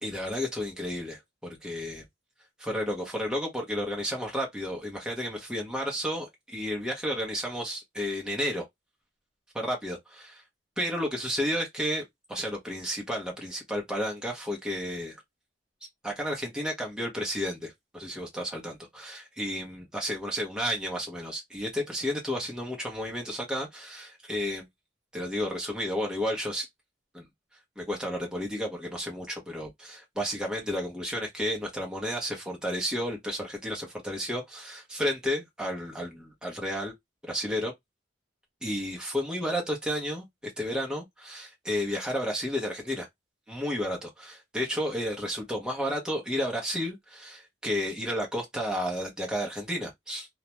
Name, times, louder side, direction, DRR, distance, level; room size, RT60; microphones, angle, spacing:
voice 1, 0.0-2.0 2.6-8.7 9.5-10.4 10.8-15.2 16.0-24.7 25.1-26.7 27.1-27.2 27.8-36.9 37.2-37.7 38.6-43.1 43.5-50.3, equal, 5° right, 0.7 m, -32 dB
2.3 x 2.1 x 2.8 m
head